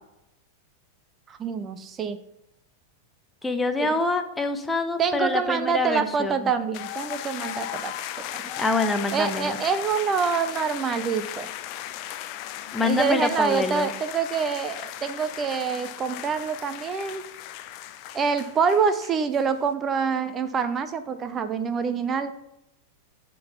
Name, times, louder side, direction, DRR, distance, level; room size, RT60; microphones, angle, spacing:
voice 1, 1.3-2.2 3.8-3.9 5.0-7.9 9.1-11.5 12.8-17.2 18.1-22.3, right 6 dB, 25° right, 11 dB, 0.6 m, -26 dB
voice 2, 3.4-6.5 8.6-9.6 12.7-13.9, left 3 dB, 10° left, 7 dB, 0.9 m, -26 dB
sound 1, 6.7-19.4, left 12 dB, 45° left, 0.5 m, -36 dB
11.0 x 3.9 x 5.6 m, 0.86 s
figure-of-eight pair, 90°, 0 cm